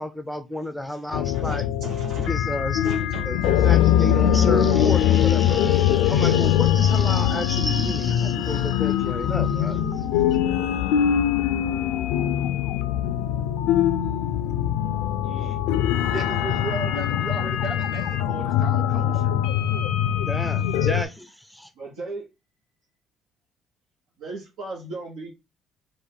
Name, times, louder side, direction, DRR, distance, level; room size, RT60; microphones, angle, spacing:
voice 1, 0.0-1.6 2.3-2.8 3.2-10.1 20.3-21.7, left 1 dB, 5° left, 0.5 m, -31 dB
sound 1, 1.1-21.0, left 10 dB, 85° left, 0.4 m, -22 dB
voice 2, 1.2-2.4 2.8-3.9 21.7-22.3 24.2-25.3, right 3 dB, 80° right, 1.3 m, -37 dB
voice 3, 15.2-15.6 16.1-19.3, right 3 dB, 55° right, 1.6 m, -35 dB
4.3 x 2.6 x 3.9 m
supercardioid pair, 75°, 0 cm